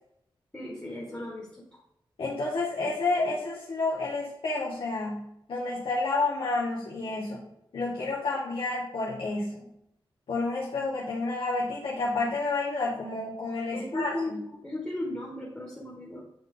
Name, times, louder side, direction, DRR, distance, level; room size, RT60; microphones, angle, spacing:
voice 1, 0.5-1.5 13.7-16.2, left 1 dB, 15° left, -6 dB, 1.6 m, -35 dB
voice 2, 2.2-7.5 7.7-9.6 10.3-14.4, left 3 dB, 75° left, -6 dB, 1.4 m, -30 dB
8.6 x 3.9 x 3.8 m, 0.78 s
wide cardioid pair, 160°, 9 cm